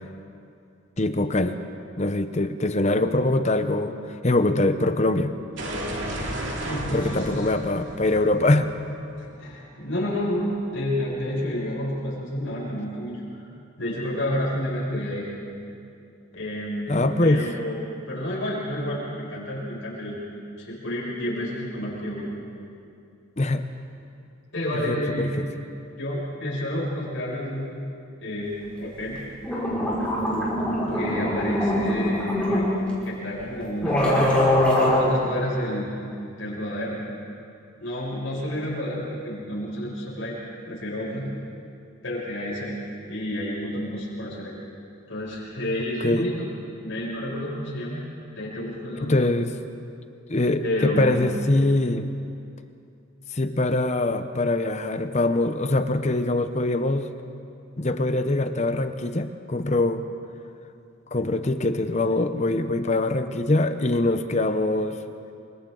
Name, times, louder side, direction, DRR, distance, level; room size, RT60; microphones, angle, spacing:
voice 1, 1.0-1.6 2.0-5.3 6.9-8.7 16.9-17.4 23.4-23.6 24.8-25.4 46.0-46.3 49.0-49.5 50.3-52.1 53.3-57.1 57.8-60.0 61.1-65.0, left 2 dB, 35° left, 9 dB, 0.8 m, -23 dB
sound 1, 5.6-10.3, right 1 dB, 60° right, 2.5 m, -34 dB
voice 2, 6.6-7.4 9.2-13.2 13.8-15.3 16.3-20.2 20.6-22.3 24.5-25.4 26.0-27.7 28.2-29.2 30.8-32.7 33.0-34.2 34.8-35.9 36.4-37.0 37.8-40.4 40.6-41.3 42.0-42.7 43.1-44.6 45.1-46.5 46.8-48.0 48.3-49.2 50.6-51.2, left 1 dB, 65° left, -6 dB, 6.5 m, -30 dB
sound 2, 29.2-29.3 29.4-32.6 33.4-33.5 33.8-35.0, left 1 dB, 5° left, 5.5 m, -22 dB
28.0 x 25.5 x 3.9 m, 2.6 s
head